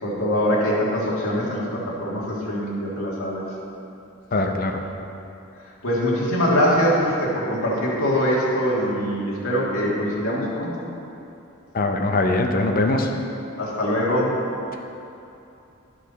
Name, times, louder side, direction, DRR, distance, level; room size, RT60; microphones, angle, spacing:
voice 1, 0.0-3.4 5.8-10.7 13.6-14.4, equal, 75° left, -5 dB, 1.7 m, -23 dB
voice 2, 4.3-4.7 11.7-13.1, left 2 dB, 40° left, 3 dB, 0.6 m, -21 dB
11.0 x 4.8 x 4.0 m, 2.8 s
head